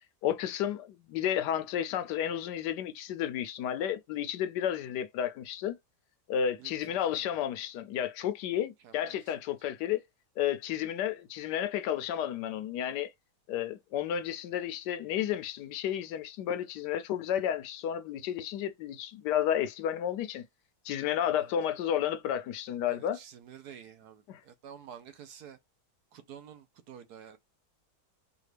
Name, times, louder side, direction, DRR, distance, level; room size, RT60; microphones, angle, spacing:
voice 1, 0.2-5.8 6.3-10.0 10.4-13.1 13.5-20.4 20.8-23.2 24.3-24.4, left 10 dB, 85° left, 1.2 m, -32 dB
voice 2, 6.6-7.3 8.8-9.4 21.4-21.5 22.9-25.6 26.1-27.4, right 8 dB, 75° right, 1.3 m, -50 dB
4.9 x 2.4 x 3.3 m
omnidirectional pair, 1.8 m